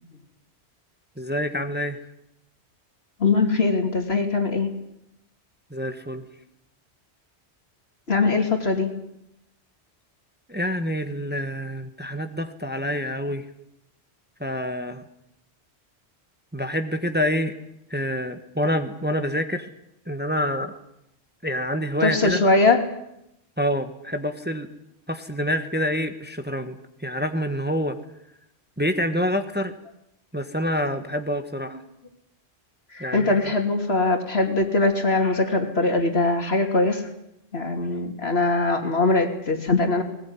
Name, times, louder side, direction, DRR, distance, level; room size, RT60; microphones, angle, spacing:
voice 1, 1.2-2.0 5.7-6.2 10.5-13.5 14.4-15.0 16.5-17.5 17.9-19.7 20.1-20.7 21.4-22.4 23.6-24.7 25.1-28.0 28.8-29.7 30.3-31.8 33.0-33.5, equal, 10° right, 8 dB, 1.3 m, -27 dB
voice 2, 3.2-4.7 8.1-8.9 22.0-22.8 32.9-37.1 37.5-40.0, left 3 dB, 70° left, 5 dB, 3.1 m, -21 dB
20.0 x 19.5 x 9.6 m, 0.83 s
omnidirectional pair, 1.1 m